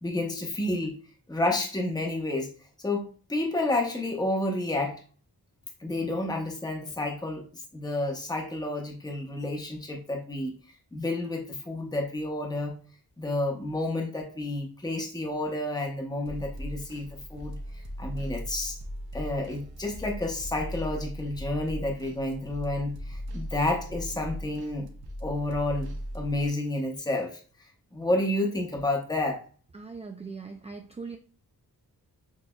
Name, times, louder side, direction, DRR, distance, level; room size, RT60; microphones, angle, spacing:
voice 1, 0.0-1.0 1.3-2.5 2.8-5.0 5.8-10.5 10.9-12.8 13.2-18.8 19.1-24.9 25.2-27.4 27.9-29.4, left 2 dB, 10° left, 0.9 m, -30 dB
sound 1, 16.3-26.5, equal, 85° right, 0.8 m, -38 dB
voice 2, 29.7-31.2, right 4 dB, 20° right, 0.4 m, -40 dB
6.2 x 2.6 x 2.3 m
cardioid pair, 80°, 36 cm